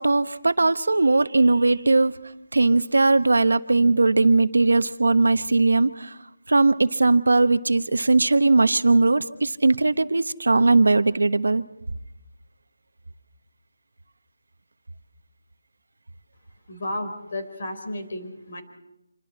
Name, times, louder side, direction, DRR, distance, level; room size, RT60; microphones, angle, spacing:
voice 1, 0.0-2.1 2.5-6.1 6.5-11.6, right 3 dB, 90° right, 11 dB, 1.1 m, -19 dB
voice 2, 16.7-18.6, left 1 dB, 45° left, 6 dB, 4.3 m, -32 dB
27.0 x 24.0 x 4.3 m, 0.87 s
figure-of-eight pair, 170°, 0 cm